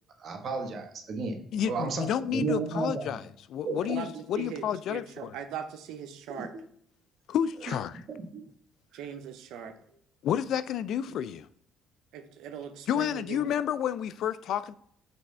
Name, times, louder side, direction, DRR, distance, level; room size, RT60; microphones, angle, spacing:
voice 1, 0.2-3.2 3.6-4.0 6.3-6.5 7.7-7.8 8.1-8.4, right 4 dB, 55° right, 1.2 m, -33 dB
voice 2, 1.5-3.2 3.5-5.4 7.3-7.9 10.2-11.5 12.9-14.7, left 9 dB, 70° left, 0.3 m, -30 dB
voice 3, 4.9-6.5 8.9-9.7 12.1-13.6, right 8 dB, 80° right, 0.6 m, -40 dB
6.0 x 3.1 x 5.4 m
supercardioid pair, 75°, 0 cm